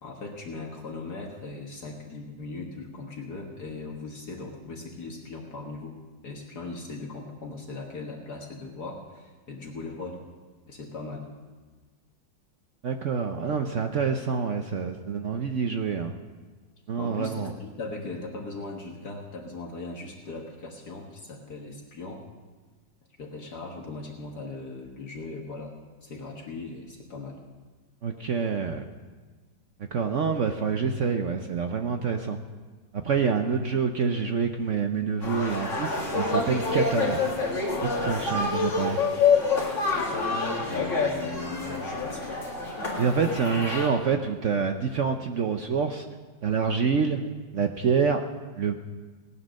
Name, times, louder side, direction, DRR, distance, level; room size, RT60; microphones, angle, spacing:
voice 1, 0.0-6.0 6.2-10.2 10.7-11.3 17.0-22.3 23.2-25.7 26.0-27.4 39.9-42.4, left 3 dB, 60° left, 0 dB, 1.9 m, -39 dB
voice 2, 12.8-16.1 16.9-17.5 28.0-28.8 29.9-32.4 33.0-37.2 37.8-39.0 43.0-46.0 46.4-47.2 47.5-48.2 48.6-48.7, right 6 dB, 60° right, 6 dB, 0.8 m, -27 dB
sound 1, 35.2-43.9, left 4 dB, 40° left, 2.6 m, -27 dB
18.0 x 9.7 x 6.4 m, 1.3 s
omnidirectional pair, 2.0 m